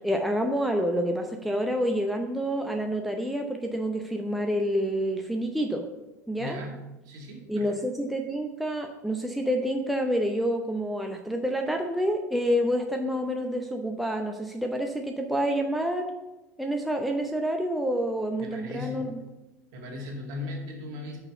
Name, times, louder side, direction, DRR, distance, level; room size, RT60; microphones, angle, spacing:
voice 1, 0.0-5.8 6.3-6.6 7.5-16.0 16.6-19.2, equal, ahead, 3 dB, 0.7 m, -28 dB
voice 2, 6.4-6.8 7.0-7.8 18.4-19.0 19.7-21.2, left 2 dB, 50° right, -1 dB, 2.1 m, -37 dB
6.1 x 5.5 x 5.9 m, 1.0 s
figure-of-eight pair, 75°, 9 cm